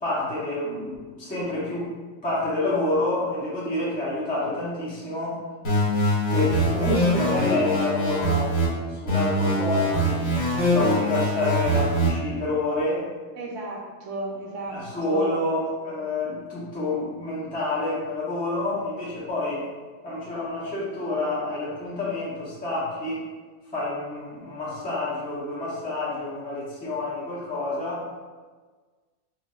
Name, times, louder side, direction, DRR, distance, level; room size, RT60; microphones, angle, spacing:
voice 1, 0.0-1.9 2.2-5.4 6.3-8.6 8.9-10.3 10.6-13.1 14.7-19.7 20.0-23.2 23.7-28.1, left 2 dB, 10° left, -10 dB, 0.5 m, -28 dB
sound 1, 5.6-8.7 9.1-12.1, equal, 80° left, 1.4 m, -23 dB
voice 2, 13.4-14.8 15.1-15.3, right 2 dB, 70° right, -1 dB, 0.9 m, -34 dB
4.5 x 2.0 x 2.3 m, 1.4 s
omnidirectional pair, 1.4 m